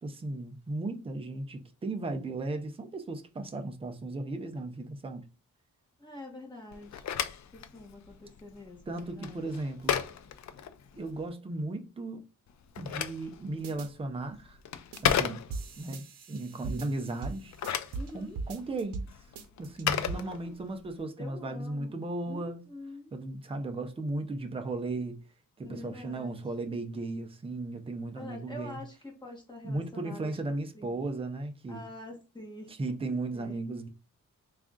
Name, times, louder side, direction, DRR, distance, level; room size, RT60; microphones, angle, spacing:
voice 1, 0.0-5.2 8.9-10.0 10.9-12.2 12.8-14.6 15.0-15.4 15.8-17.5 18.1-19.0 19.6-22.7 23.1-25.2 25.6-28.8 29.6-31.9 32.8-33.9, right 2 dB, 15° right, 0.5 m, -36 dB
voice 2, 6.0-7.0 7.5-9.4 18.0-18.4 19.9-20.6 21.2-23.1 25.6-26.4 28.1-31.1 31.7-32.7 33.3-33.6, left 2 dB, 15° left, 1.3 m, -46 dB
Telephone, 6.7-11.2 12.5-15.9 17.3-20.9, left 9 dB, 55° left, 0.4 m, -35 dB
sound 1, 13.6-13.9 14.9-15.2 15.5-18.1 18.4-19.1 19.4-20.2, right 4 dB, 75° right, 0.7 m, -39 dB
3.6 x 2.4 x 3.6 m
wide cardioid pair, 155°, 33 cm